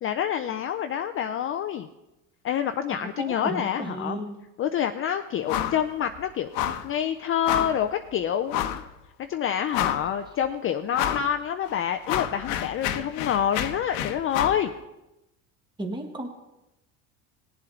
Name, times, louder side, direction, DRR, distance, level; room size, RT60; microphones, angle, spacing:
voice 1, 0.0-1.9 2.4-4.2 4.6-6.5 6.8-8.8 9.3-14.7, left 9 dB, 35° left, 7 dB, 0.5 m, -27 dB
voice 2, 3.2-4.4 15.8-16.3, right 1 dB, 10° right, 3 dB, 1.4 m, -33 dB
sound 1, 5.5-5.8 6.1-6.2 6.5-6.9 7.5-7.8 8.5-8.9 9.3-9.4 9.7-10.2 10.9-11.3 11.7-14.6, left 11 dB, 75° left, 1.0 m, -29 dB
19.0 x 7.7 x 3.8 m, 0.96 s
supercardioid pair, 110°, 41 cm